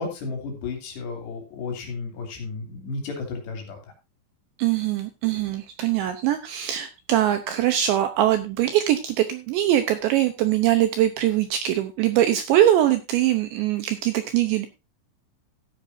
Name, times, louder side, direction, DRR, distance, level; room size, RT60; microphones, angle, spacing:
voice 1, 0.0-3.8, left 4 dB, 60° left, 3 dB, 4.8 m, -33 dB
voice 2, 4.6-14.7, right 12 dB, 75° right, 9 dB, 2.7 m, -22 dB
14.0 x 10.5 x 2.7 m, 0.25 s
omnidirectional pair, 6.0 m